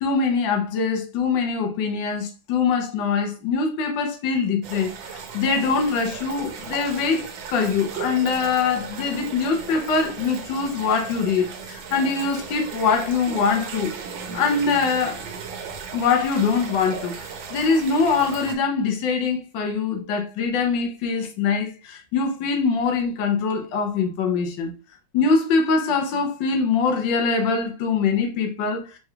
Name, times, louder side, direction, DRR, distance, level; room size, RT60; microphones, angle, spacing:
voice 1, 0.0-13.9 14.3-15.2 15.9-17.1 17.5-24.7 25.1-28.8, left 5 dB, 75° left, 1.5 m, -23 dB
sound 1, 4.6-18.5, right 6 dB, 90° right, 1.5 m, -36 dB
4.7 x 3.2 x 2.3 m
omnidirectional pair, 2.1 m